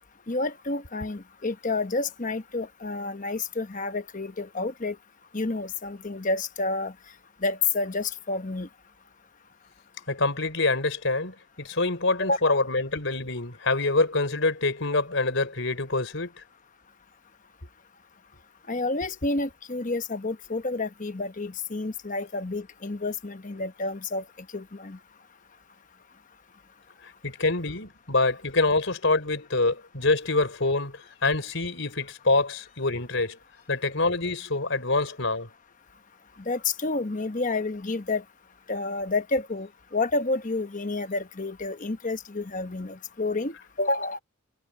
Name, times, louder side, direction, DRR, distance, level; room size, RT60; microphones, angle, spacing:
voice 1, 0.3-5.0 5.3-6.9 7.4-8.7 12.2-12.6 18.7-25.0 36.4-38.2 38.7-44.2, left 3 dB, 40° left, 1.0 m, -29 dB
voice 2, 10.1-16.4 27.0-33.4 33.7-35.5, left 3 dB, 60° left, 4.4 m, -26 dB
head